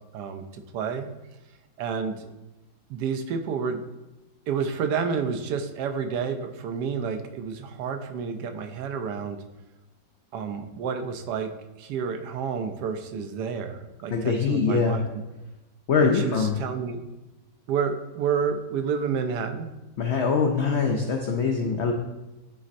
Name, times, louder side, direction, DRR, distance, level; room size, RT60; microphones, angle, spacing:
voice 1, 0.1-1.1 1.8-2.3 2.9-3.8 4.5-9.4 10.3-11.5 11.8-15.0 16.0-17.0 17.7-19.7, right 6 dB, 80° right, 7 dB, 1.2 m, -30 dB
voice 2, 14.1-15.0 15.9-16.6 20.0-21.9, left 5 dB, 80° left, 3 dB, 0.6 m, -23 dB
10.5 x 4.2 x 2.6 m, 1.0 s
omnidirectional pair, 1.8 m